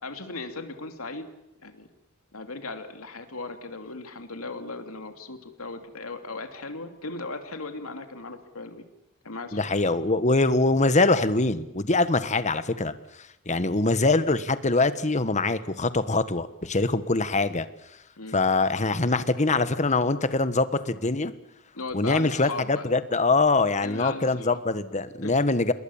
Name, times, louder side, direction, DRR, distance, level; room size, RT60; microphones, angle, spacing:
voice 1, 0.0-1.3 1.6-1.9 2.3-8.9 9.2-9.6 18.2-18.4 21.7-22.9 23.8-24.6 25.2-25.3, left 3 dB, 85° left, 7 dB, 3.0 m, -37 dB
voice 2, 9.5-12.9 13.5-17.7 18.3-21.3 21.9-25.7, left 3 dB, 35° left, 12 dB, 1.4 m, -23 dB
27.5 x 21.0 x 7.3 m, 0.84 s
head